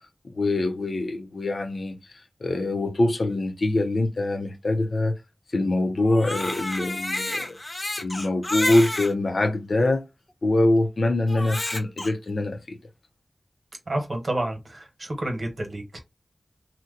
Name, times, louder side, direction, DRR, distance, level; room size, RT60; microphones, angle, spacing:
voice 1, 0.2-2.0 2.4-5.2 5.5-7.6 8.0-10.0 10.4-12.8, left 2 dB, 75° left, 0.6 m, -24 dB
Crying sobbing, 6.0-9.1 9.9-10.0 11.3-12.1, left 1 dB, 40° left, 0.8 m, -30 dB
voice 2, 13.9-16.0, right 1 dB, 65° right, 1.1 m, -29 dB
2.9 x 2.2 x 3.8 m
cardioid pair, 45°, 0 cm